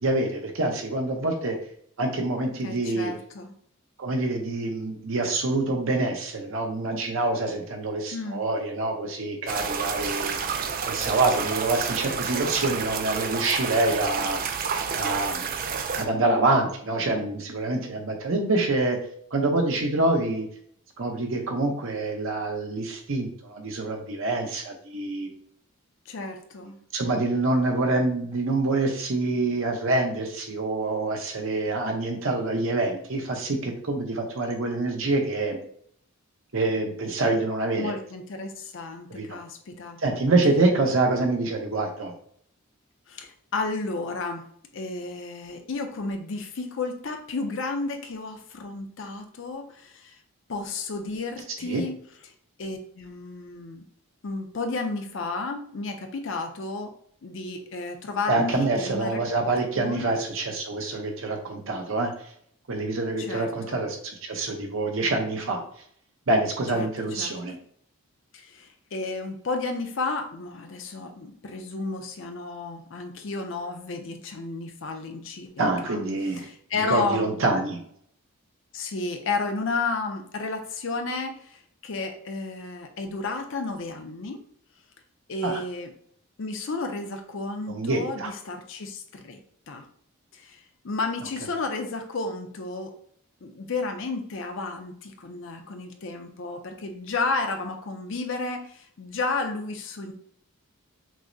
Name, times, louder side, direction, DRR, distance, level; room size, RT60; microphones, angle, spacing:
voice 1, 0.0-1.6 2.0-3.1 4.0-10.5 10.9-14.4 15.0-15.5 16.0-19.0 19.3-20.5 21.0-25.3 26.9-35.6 36.5-37.9 39.2-39.4 40.0-42.1 51.7-51.8 58.3-62.1 62.7-65.6 66.3-67.5 75.6-76.5 76.9-77.8 85.4-85.6 87.7-88.3, right 2 dB, 65° right, 2 dB, 0.8 m, -26 dB
voice 2, 2.6-3.6 8.1-8.5 26.1-26.8 37.8-40.0 43.1-44.5 44.7-50.2 50.5-52.0 52.6-53.8 54.2-56.9 57.2-59.2 59.7-60.1 63.2-63.8 66.7-66.9 67.2-67.4 68.3-76.0 76.3-77.4 78.7-84.4 85.3-85.9 86.4-89.4 89.7-89.9 90.3-92.9 93.4-100.1, left 3 dB, 60° left, 5 dB, 0.5 m, -32 dB
sound 1, 9.5-16.0, right 6 dB, 40° right, 0.3 m, -30 dB
6.0 x 2.1 x 2.6 m, 0.64 s
head